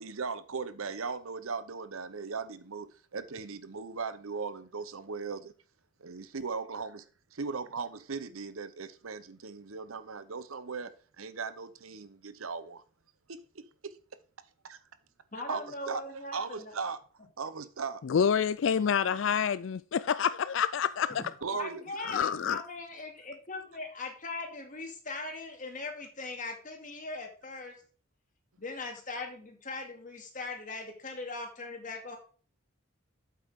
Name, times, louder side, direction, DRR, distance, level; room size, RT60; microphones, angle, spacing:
voice 1, 0.0-5.5 6.0-7.0 7.3-12.8 13.3-13.9 15.4-17.0 17.4-18.0 21.4-21.9, right 5 dB, 85° right, 0.9 m, -38 dB
voice 2, 15.3-16.7 21.1-27.7 28.6-32.2, left 3 dB, 40° left, 2.3 m, -40 dB
voice 3, 18.0-21.2 22.0-22.6, left 7 dB, 60° left, 0.4 m, -27 dB
8.3 x 7.9 x 3.7 m
head